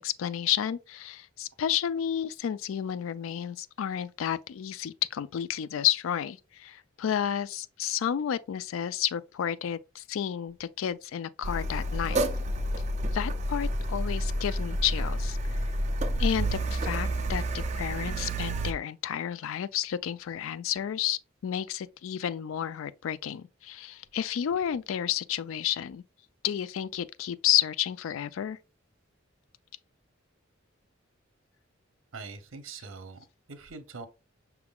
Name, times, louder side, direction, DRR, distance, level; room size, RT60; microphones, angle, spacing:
voice 1, 0.0-12.2 13.1-15.6 16.2-26.0 26.4-28.6, left 10 dB, 80° left, 0.3 m, -31 dB
Car, 11.4-18.7, right 1 dB, 35° right, 0.5 m, -29 dB
voice 2, 32.1-34.1, right 4 dB, 75° right, 0.7 m, -43 dB
5.7 x 3.6 x 2.3 m
head